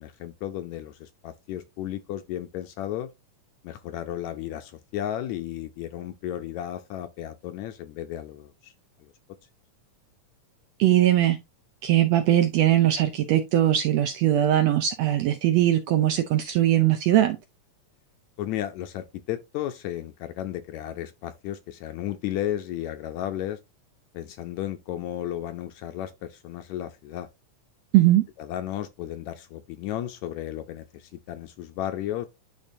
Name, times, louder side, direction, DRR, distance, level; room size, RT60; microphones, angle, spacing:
voice 1, 0.0-3.1 3.6-8.7 9.0-9.1 18.4-23.6 24.1-27.3 28.4-32.3, left 12 dB, 75° left, 1.7 m, -34 dB
voice 2, 10.8-11.4 11.8-17.4 27.9-28.3, right 13 dB, 80° right, 1.6 m, -20 dB
10.5 x 3.7 x 2.6 m
omnidirectional pair, 3.6 m